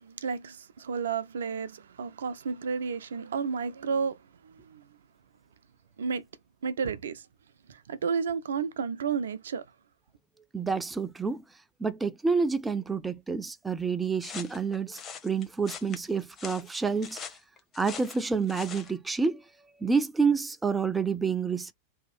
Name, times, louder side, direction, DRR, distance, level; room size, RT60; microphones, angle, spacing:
voice 1, 0.0-4.9 6.0-6.3 6.6-7.3 7.7-9.7, right 6 dB, 65° right, 0.4 m, -32 dB
voice 2, 10.5-11.4 11.8-17.2 17.8-19.4 19.8-21.7, right 5 dB, 10° right, 0.5 m, -28 dB
sound 1, 14.2-18.9, left 7 dB, 25° left, 0.9 m, -43 dB
2.8 x 2.3 x 4.2 m
figure-of-eight pair, 90°, 0 cm